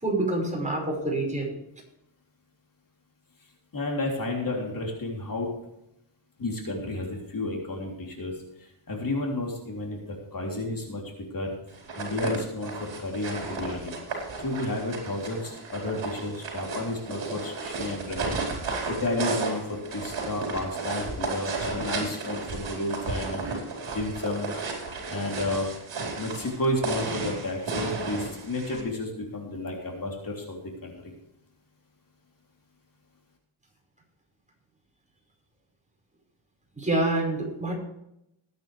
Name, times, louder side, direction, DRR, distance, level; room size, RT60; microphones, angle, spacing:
voice 1, 0.0-1.5 36.8-37.8, right 2 dB, 15° right, -1 dB, 5.5 m, -27 dB
voice 2, 3.7-5.5 6.4-8.3 8.6-11.0 11.3-11.6 12.0-23.4 23.9-24.5 25.1-25.7 26.2-31.1, left 2 dB, 40° left, -1 dB, 3.4 m, -32 dB
sound 1, 11.7-28.8, right 4 dB, 65° right, 4.9 m, -33 dB
20.0 x 9.3 x 3.4 m, 0.81 s
wide cardioid pair, 130°, 49 cm